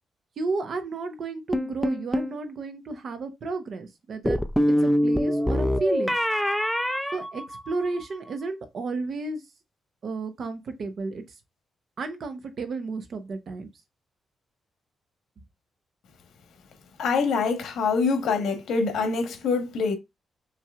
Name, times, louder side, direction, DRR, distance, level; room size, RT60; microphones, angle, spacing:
voice 1, 0.4-4.4 4.8-6.1 7.1-9.4 10.0-11.2 12.0-13.7, right 3 dB, 45° right, 0.8 m, -32 dB
sound 1, 1.5-2.4 4.3-8.0, equal, ahead, 0.3 m, -24 dB
voice 2, 17.0-19.9, left 4 dB, 85° left, 1.2 m, -25 dB
5.7 x 3.1 x 2.4 m
wide cardioid pair, 170°, 0 cm